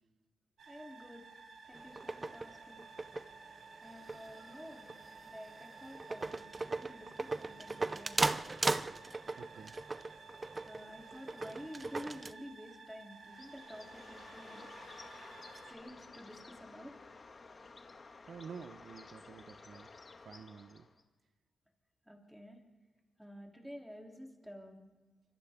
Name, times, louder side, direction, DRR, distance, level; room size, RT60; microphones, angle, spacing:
sound 1, 0.6-15.7, right 4 dB, 80° right, 3.1 m, -54 dB
voice 1, 0.7-1.3 1.6-2.8 3.8-4.9 5.2-8.2 10.5-14.7 15.7-16.9 22.0-22.6 23.2-24.8, equal, ahead, 0 dB, 3.3 m, -50 dB
sound 2, 1.7-12.3, right 3 dB, 25° right, 0.6 m, -38 dB
voice 2, 9.4-9.8 18.3-19.9 20.2-20.9, right 6 dB, 60° right, 9 dB, 0.9 m, -49 dB
Bird, 13.3-21.0, left 3 dB, 35° left, 1.8 m, -53 dB
28.5 x 26.5 x 3.7 m, 1.3 s
wide cardioid pair, 125°, 0 cm